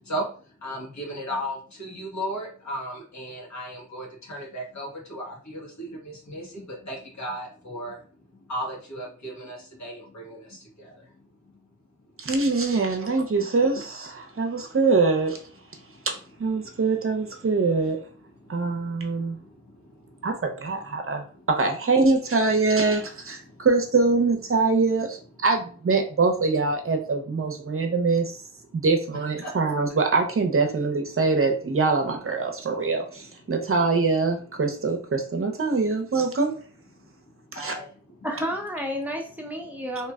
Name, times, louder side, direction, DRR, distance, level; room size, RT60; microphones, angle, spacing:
voice 1, 0.0-11.7 14.2-14.3 15.7-16.1 16.6-16.8 18.4-20.3 20.9-21.5 23.5-23.7 28.7-28.8 29.4-29.6 36.9-38.2, equal, 60° left, 1.5 m, -37 dB
voice 2, 12.2-15.4 16.0-18.0 18.5-19.4 20.2-28.4 28.7-36.5 37.5-37.7, right 3 dB, 45° right, 0.7 m, -24 dB
voice 3, 38.2-40.1, equal, 5° right, 0.8 m, -31 dB
3.0 x 2.9 x 2.4 m
cardioid pair, 55°, 31 cm